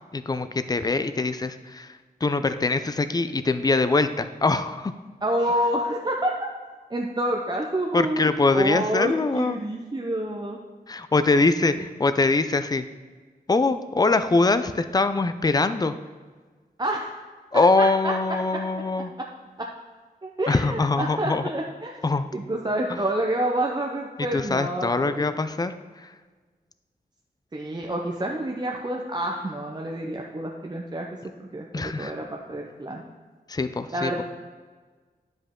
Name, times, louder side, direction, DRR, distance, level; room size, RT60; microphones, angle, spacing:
voice 1, 0.1-1.9 2.2-4.9 7.9-9.6 10.9-12.8 13.5-15.9 17.5-19.1 20.5-21.5 22.0-22.3 24.3-26.1 31.7-32.1 33.5-34.1, left 3 dB, 25° left, 11 dB, 0.4 m, -23 dB
voice 2, 5.2-6.3 6.9-8.2 8.5-10.6 16.8-17.1 18.0-18.1 19.6-19.7 20.2-22.0 22.3-25.3 27.5-31.1 31.4-33.0 33.9-34.2, right 1 dB, 25° right, 0 dB, 0.7 m, -28 dB
9.8 x 5.3 x 3.7 m, 1.4 s
wide cardioid pair, 85°, 16 cm